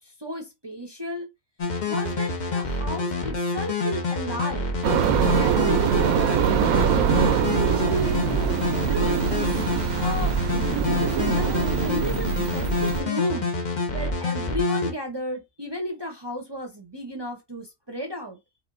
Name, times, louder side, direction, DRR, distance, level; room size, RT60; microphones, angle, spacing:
voice 1, 0.2-1.3 1.9-4.7 5.4-8.2 8.9-9.6 10.0-10.4 10.7-13.5 13.9-18.4, equal, 25° right, 0.6 m, -33 dB
sound 1, 1.6-14.9, left 3 dB, 40° left, 0.7 m, -27 dB
sound 2, 4.8-13.0, right 8 dB, 80° right, 1.0 m, -23 dB
5.0 x 2.5 x 2.5 m
omnidirectional pair, 1.5 m